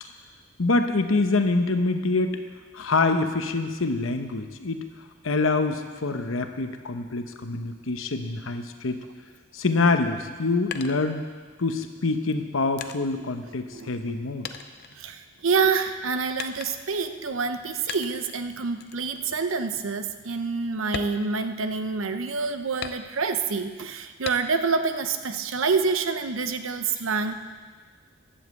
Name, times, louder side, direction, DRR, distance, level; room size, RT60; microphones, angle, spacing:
voice 1, 0.6-2.4 2.7-4.8 5.2-9.0 9.5-11.3 11.6-14.5, left 3 dB, 85° left, 7 dB, 0.9 m, -25 dB
sound 1, 10.7-11.7 12.3-14.2 14.4-15.6 16.4-17.0 17.9-18.4 18.8-19.1 19.5-19.6 20.0-20.2 20.8-22.0 22.8-23.5 24.2-24.8 25.2-26.0, left 7 dB, 50° left, 0.5 m, -39 dB
voice 2, 15.0-27.3, right 4 dB, 85° right, 9 dB, 0.8 m, -27 dB
11.5 x 7.3 x 7.6 m, 1.5 s
head